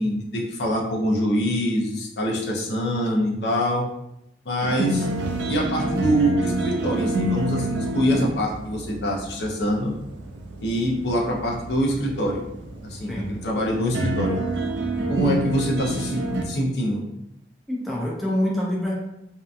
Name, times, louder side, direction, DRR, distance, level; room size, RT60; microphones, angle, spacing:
voice 1, 0.0-3.8 4.5-5.1 5.5-9.9 10.6-12.4 12.8-14.4 15.1-17.0, equal, 65° left, -1 dB, 0.5 m, -24 dB
sound 1, 4.6-16.4, right 1 dB, 75° right, 0.4 m, -28 dB
voice 2, 17.7-18.9, left 1 dB, ahead, -4 dB, 0.4 m, -25 dB
2.7 x 2.3 x 2.4 m, 0.83 s
head